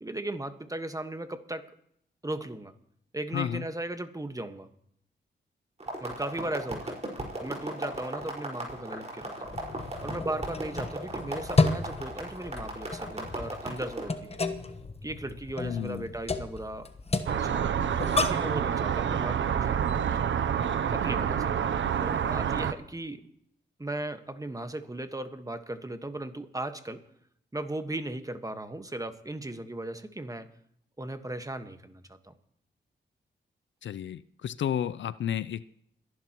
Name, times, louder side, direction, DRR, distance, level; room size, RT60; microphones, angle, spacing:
voice 1, 0.0-1.7 2.2-2.7 3.1-4.7 6.0-7.0 7.4-9.6 10.0-14.4 15.0-16.9 17.3-20.1 20.9-21.5 22.0-23.3 23.8-27.0 27.5-30.5 31.0-32.3, right 1 dB, 15° right, 8 dB, 1.4 m, -37 dB
voice 2, 3.3-3.6 15.6-16.1 33.8-35.6, left 9 dB, 70° left, 17 dB, 0.5 m, -32 dB
sound 1, 5.8-14.1, right 2 dB, 35° right, 5.0 m, -37 dB
sound 2, 9.4-18.6, left 3 dB, 30° left, 1.2 m, -32 dB
sound 3, 17.3-22.7, right 8 dB, 75° right, 0.7 m, -28 dB
29.5 x 11.0 x 3.0 m, 0.71 s
cardioid pair, 55°, 20 cm